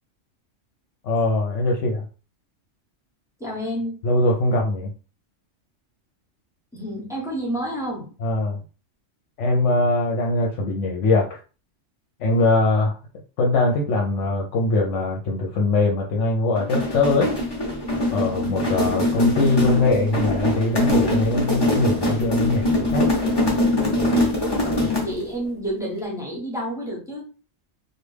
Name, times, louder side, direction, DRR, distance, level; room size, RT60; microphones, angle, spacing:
voice 1, 1.0-2.0 4.0-4.9 8.2-8.6 9.4-11.4 12.2-13.0 13.4-17.3 18.1-23.1, left 2 dB, 75° left, 1.0 m, -22 dB
voice 2, 3.4-4.0 6.7-8.1 25.0-27.2, equal, 5° right, 1.0 m, -29 dB
sound 1, 16.5-25.2, left 1 dB, 20° left, 0.9 m, -22 dB
3.3 x 2.3 x 3.2 m
omnidirectional pair, 1.3 m